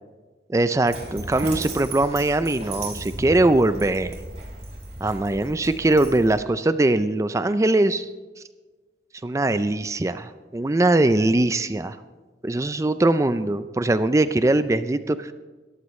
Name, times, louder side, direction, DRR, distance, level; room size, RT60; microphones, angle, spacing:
voice 1, 0.5-4.2 5.0-8.1 8.4-8.5 9.2-12.0 12.4-15.3, right 2 dB, 15° right, 12 dB, 0.4 m, -21 dB
Dog, 0.9-6.4, right 2 dB, 40° right, 4.0 m, -36 dB
20.5 x 15.0 x 3.2 m, 1.3 s
head